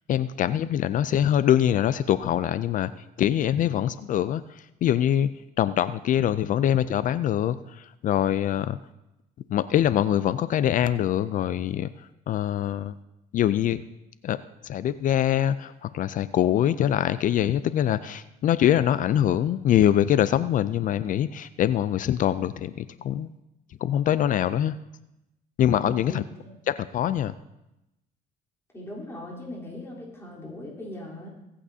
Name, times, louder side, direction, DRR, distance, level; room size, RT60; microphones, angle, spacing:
voice 1, 0.1-2.9 3.2-8.8 9.5-12.9 13.3-13.8 14.2-14.4 14.6-23.3 23.8-24.8 25.6-26.2 26.7-27.3, left 11 dB, 50° left, 15 dB, 0.4 m, -24 dB
voice 2, 25.8-26.5 28.7-31.3, left 1 dB, 15° left, -5 dB, 3.5 m, -39 dB
23.0 x 8.5 x 2.8 m, 0.93 s
cardioid pair, 110°, 17 cm